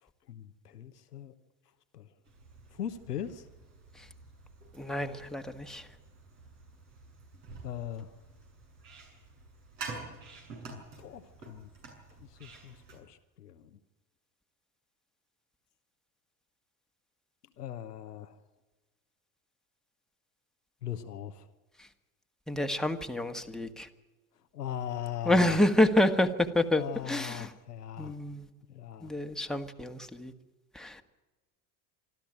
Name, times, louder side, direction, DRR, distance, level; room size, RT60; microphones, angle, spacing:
voice 1, 0.0-1.3 1.9-2.1 2.7-3.5 7.6-8.1 10.7-11.7 12.2-13.8 17.6-18.4 20.8-21.5 24.5-25.6 26.8-28.2 28.7-29.1, left 10 dB, 85° left, 10 dB, 1.1 m, -40 dB
sound 1, 2.2-13.0, right 3 dB, 70° right, 7.1 m, -49 dB
voice 2, 4.7-5.9 21.8-21.9 22.5-23.9 25.2-27.5 28.0-28.5 29.0-30.3 30.7-31.0, left 1 dB, ahead, 5 dB, 1.7 m, -28 dB
26.0 x 13.0 x 8.9 m, 1.2 s
hypercardioid pair, 70°, 46 cm